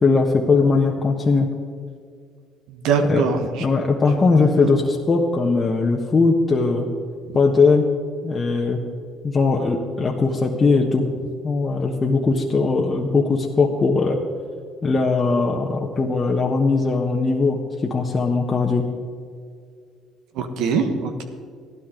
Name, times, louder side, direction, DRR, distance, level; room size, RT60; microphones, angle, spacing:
voice 1, 0.0-1.5 3.1-3.2 3.6-6.9 7.3-7.9 8.2-8.8 9.2-11.1 11.4-14.2 14.8-17.6 17.9-18.9, left 4 dB, 35° left, 0 dB, 1.3 m, -19 dB
voice 2, 2.7-3.4 4.3-4.7 20.4-21.2, right 5 dB, 75° right, 6 dB, 1.4 m, -23 dB
15.0 x 12.0 x 3.9 m, 2.2 s
hypercardioid pair, 65°, 0 cm